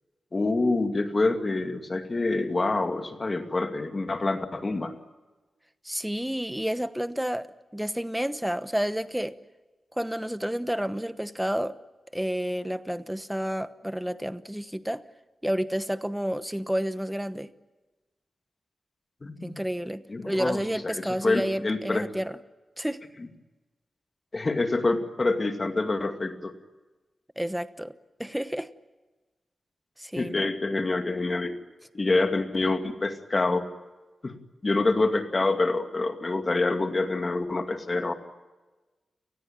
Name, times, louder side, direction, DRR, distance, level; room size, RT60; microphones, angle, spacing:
voice 1, 0.3-4.9 19.2-19.6 20.1-22.0 24.3-26.5 30.2-31.6 31.9-33.7 34.2-34.3 34.6-38.1, left 2 dB, 30° left, 7 dB, 2.3 m, -26 dB
voice 2, 5.8-7.5 7.7-9.4 10.0-11.8 12.1-15.0 15.4-17.5 19.4-22.4 22.8-23.0 27.4-27.9 28.2-28.7 30.0-30.5, equal, 5° right, 12 dB, 1.0 m, -30 dB
29.5 x 19.5 x 8.9 m, 1.2 s
wide cardioid pair, 135°, 0 cm